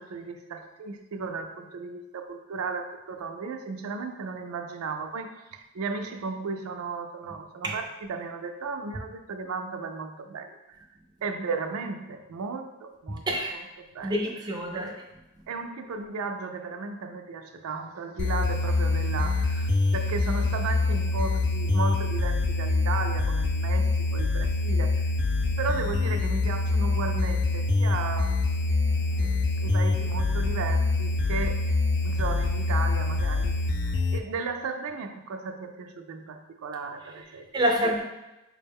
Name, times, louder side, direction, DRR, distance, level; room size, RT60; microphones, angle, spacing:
voice 1, 0.0-10.9 11.2-13.3 13.5-14.3 14.7-15.0 15.5-25.1 25.6-28.4 29.2-31.7 32.0-37.5, right 4 dB, 85° right, 5 dB, 0.4 m, -35 dB
voice 2, 13.1-13.5 14.0-14.9 37.5-38.0, equal, 20° right, 0 dB, 0.4 m, -27 dB
sound 1, 18.2-34.2, left 3 dB, 55° left, 0.3 m, -25 dB
4.6 x 2.1 x 3.4 m, 0.98 s
head